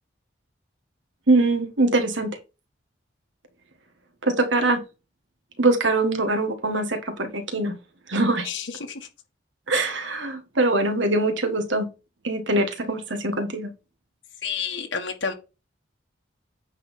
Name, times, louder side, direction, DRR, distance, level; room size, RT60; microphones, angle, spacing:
voice 1, 1.3-2.4 4.2-4.8 5.6-7.7 8.1-8.5 9.7-11.9 12.2-13.7, right 2 dB, 80° right, 1.6 m, -23 dB
voice 2, 8.4-9.1 14.4-15.3, left 6 dB, 80° left, 1.5 m, -30 dB
9.1 x 4.0 x 5.4 m
head